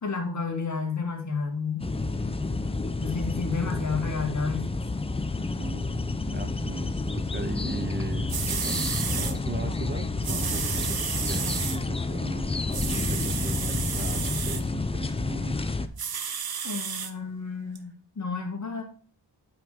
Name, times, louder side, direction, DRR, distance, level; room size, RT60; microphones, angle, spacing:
voice 1, 0.0-1.8 3.0-4.6 16.6-18.8, left 4 dB, 40° left, 2 dB, 2.1 m, -31 dB
sound 1, 1.8-15.9, left 3 dB, 15° left, 0.5 m, -30 dB
voice 2, 5.6-12.5 12.8-15.6, right 3 dB, 25° right, 6 dB, 0.7 m, -38 dB
sound 2, 8.0-8.1 8.3-9.3 10.2-11.8 12.7-14.6 16.0-17.1 17.8-17.9, right 7 dB, 60° right, 0.9 m, -32 dB
8.8 x 5.2 x 3.6 m, 0.42 s
wide cardioid pair, 140°, 42 cm